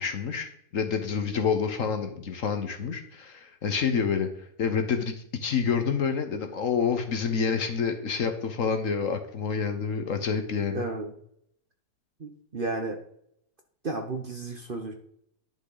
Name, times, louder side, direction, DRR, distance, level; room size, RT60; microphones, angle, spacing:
voice 1, 0.0-5.1 5.4-10.8, left 6 dB, 55° left, 7 dB, 1.2 m, -28 dB
voice 2, 10.7-11.1 12.2-13.0 13.8-14.9, right 2 dB, 40° right, 4 dB, 0.9 m, -33 dB
11.0 x 6.1 x 4.0 m, 0.69 s
omnidirectional pair, 1.8 m